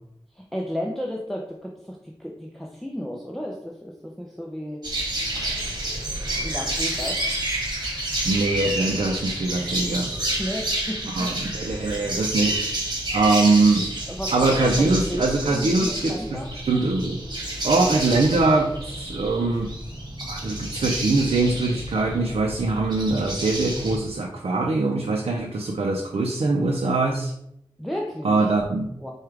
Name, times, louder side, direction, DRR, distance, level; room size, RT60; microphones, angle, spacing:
voice 1, 0.3-4.8 6.4-7.3 10.4-11.3 14.1-16.5 27.8-28.5 29.0-29.1, equal, ahead, -2 dB, 0.6 m, -33 dB
sound 1, 4.8-24.0, right 1 dB, 45° right, 1.4 m, -29 dB
voice 2, 8.2-10.2 11.1-12.7 13.1-13.9 14.3-16.4 16.6-17.2 17.6-19.7 20.3-27.3 28.2-29.1, right 3 dB, 85° right, 1 dB, 0.5 m, -22 dB
4.8 x 2.3 x 4.6 m, 0.78 s
wide cardioid pair, 80°, 10 cm